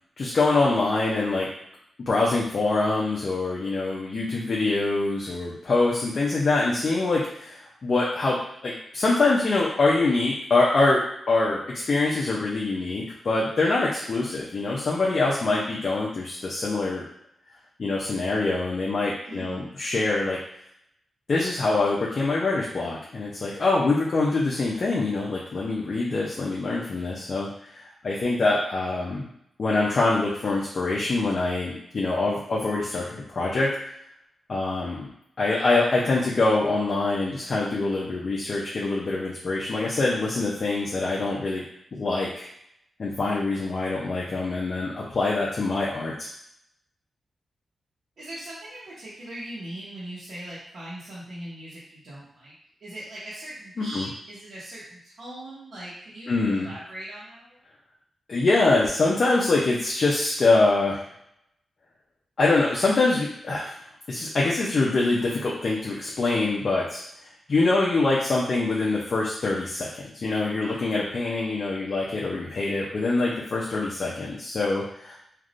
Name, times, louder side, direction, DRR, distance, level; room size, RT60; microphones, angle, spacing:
voice 1, 0.2-1.5 2.1-17.0 17.8-20.4 21.3-29.3 29.6-33.7 34.5-35.1 35.4-41.6 42.0-42.5 43.0-46.3 53.8-54.1 56.3-56.7 58.3-61.1 62.4-63.7 64.1-67.0 67.5-75.2, left 3 dB, 50° left, -5 dB, 0.6 m, -24 dB
voice 2, 19.2-19.7 48.2-52.5 52.8-57.6, right 1 dB, 70° right, -11 dB, 1.0 m, -40 dB
3.3 x 2.5 x 2.5 m, 0.74 s
cardioid pair, 95°, 0 cm